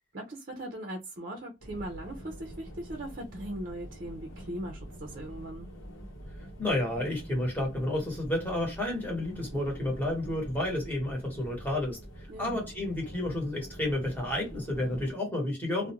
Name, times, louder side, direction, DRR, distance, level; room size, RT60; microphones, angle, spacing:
voice 1, 0.1-5.7 12.3-12.6, right 1 dB, 45° right, 0.5 m, -39 dB
sound 1, 1.6-15.1, equal, 75° left, 0.8 m, -45 dB
voice 2, 6.6-15.9, left 1 dB, 10° left, 1.0 m, -31 dB
2.4 x 2.1 x 2.8 m
head